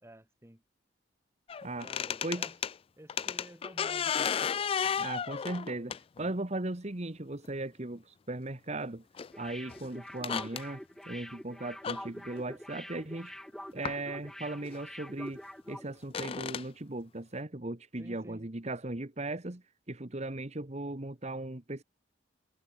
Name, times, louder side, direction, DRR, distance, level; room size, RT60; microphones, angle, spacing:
voice 1, 0.0-0.6 1.8-2.6 3.0-4.5 18.0-18.5, right 1 dB, 15° right, 2.4 m, -52 dB
sound 1, 1.5-2.7 3.1-6.3 7.4-7.5 9.2-9.3 9.7-9.8 10.1-10.6 11.8-12.0 13.8-14.0 14.7-14.8 16.0-16.6, left 7 dB, 30° left, 0.3 m, -33 dB
voice 2, 5.0-9.0 9.4-13.3 13.7-15.4 15.7-21.8, right 2 dB, 40° right, 1.5 m, -38 dB
sound 2, 9.3-15.9 16.2-16.3, equal, ahead, 1.1 m, -46 dB
head